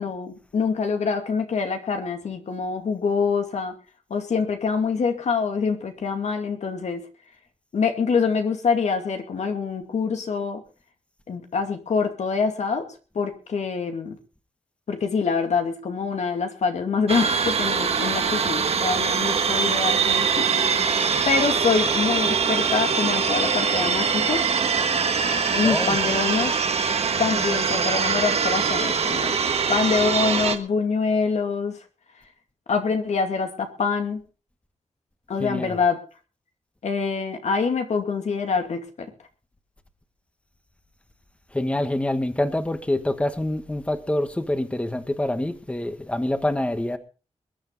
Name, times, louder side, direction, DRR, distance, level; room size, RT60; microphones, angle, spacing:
voice 1, 0.0-3.7 4.1-7.1 7.7-10.6 11.3-14.2 14.9-20.5 21.3-24.5 25.6-26.5 27.2-29.4 29.7-31.8 32.7-34.2 35.3-36.0 36.8-39.1, left 5 dB, 90° left, 2.5 m, -25 dB
sound 1, 17.1-30.6, right 6 dB, 65° right, 1.4 m, -23 dB
voice 2, 25.6-26.0 35.4-35.8 41.5-47.0, left 1 dB, 10° left, 1.4 m, -26 dB
22.0 x 10.0 x 4.1 m
wide cardioid pair, 160°, 11 cm